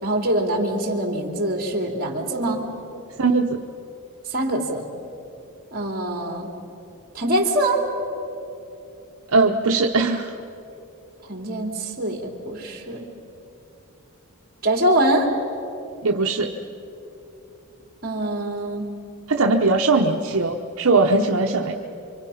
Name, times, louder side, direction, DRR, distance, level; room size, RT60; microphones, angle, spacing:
voice 1, 0.0-2.7 4.3-4.8 5.7-6.5 7.1-7.8 11.3-13.1 14.6-15.3 18.0-18.9, right 1 dB, 45° right, 2 dB, 3.1 m, -24 dB
voice 2, 3.2-3.6 9.3-10.3 16.0-16.5 19.3-21.7, right 3 dB, 70° right, 2 dB, 1.0 m, -20 dB
28.5 x 25.0 x 5.7 m, 2.9 s
head